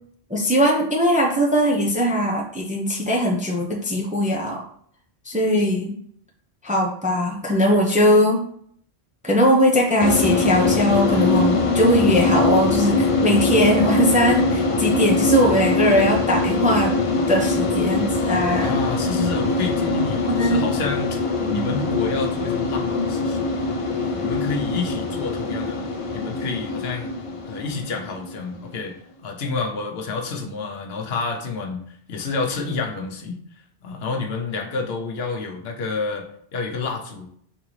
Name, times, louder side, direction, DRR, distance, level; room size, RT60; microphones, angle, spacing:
voice 1, 0.3-4.6 5.3-6.0 6.6-8.5 9.2-17.0 17.3-18.7 20.3-20.7 21.4-21.7, equal, 10° right, -1 dB, 0.5 m, -20 dB
sound 1, 10.0-28.7, left 3 dB, 40° left, 0.5 m, -22 dB
voice 2, 18.6-23.5 24.0-27.1 27.5-29.0 29.2-33.4 33.8-37.3, left 4 dB, 75° left, 3 dB, 1.0 m, -29 dB
3.9 x 3.7 x 3.1 m, 0.64 s
omnidirectional pair, 1.1 m